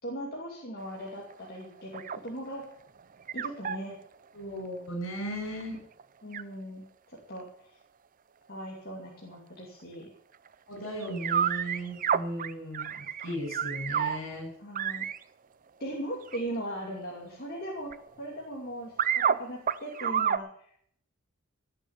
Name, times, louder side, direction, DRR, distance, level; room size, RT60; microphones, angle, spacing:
voice 1, 0.0-2.6 3.3-4.0 6.2-7.8 8.5-10.1 14.6-15.1 15.8-17.9 18.2-21.0, equal, 45° left, -2 dB, 2.6 m, -39 dB
sound 1, 0.8-2.6 3.0-3.8 5.3-5.4 5.6-5.7 6.0-6.1 6.3-6.4 9.3-9.4 10.5-10.6 11.0-14.2 14.7-15.2 16.2-16.6 17.0-18.4 18.8-19.4 19.7-20.4, right 8 dB, 40° right, 0.5 m, -30 dB
voice 2, 4.3-5.8 10.7-12.9 13.2-14.5, equal, 65° left, 3 dB, 6.8 m, -36 dB
17.5 x 6.4 x 8.8 m, 0.65 s
head